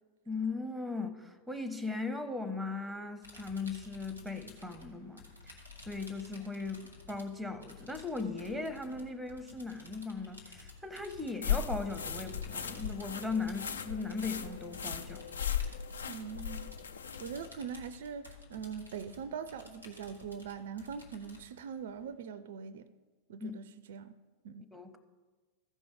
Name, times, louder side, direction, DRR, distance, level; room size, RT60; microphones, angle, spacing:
voice 1, 0.3-15.3 23.4-23.5 24.7-25.0, left 3 dB, ahead, 0.8 m, -38 dB
sound 1, 3.2-22.1, left 3 dB, 85° left, 1.5 m, -54 dB
sound 2, 11.4-17.5, left 8 dB, 70° left, 0.5 m, -37 dB
voice 2, 16.1-16.7 17.2-22.9 23.3-24.1 24.4-24.7, right 7 dB, 55° right, 0.4 m, -42 dB
14.5 x 5.3 x 4.9 m
figure-of-eight pair, 90°, 0 cm